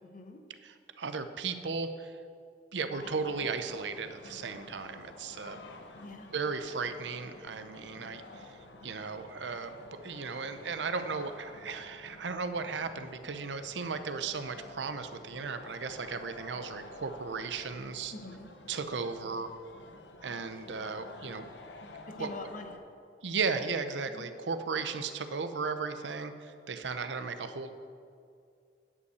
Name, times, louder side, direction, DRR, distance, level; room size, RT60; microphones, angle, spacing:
voice 1, 0.0-0.4 6.0-6.3 18.1-18.5 22.1-22.8 24.1-24.3, left 2 dB, 50° left, 6 dB, 0.9 m, -44 dB
voice 2, 0.6-2.1 2.7-5.6 6.3-8.6 8.8-18.1 18.7-19.5 20.2-21.5 22.2-22.3 23.2-27.7, right 4 dB, 90° right, 9 dB, 0.7 m, -36 dB
sound 1, 2.9-22.8, left 2 dB, 80° left, 0.8 m, -50 dB
9.7 x 5.5 x 7.9 m, 2.4 s
head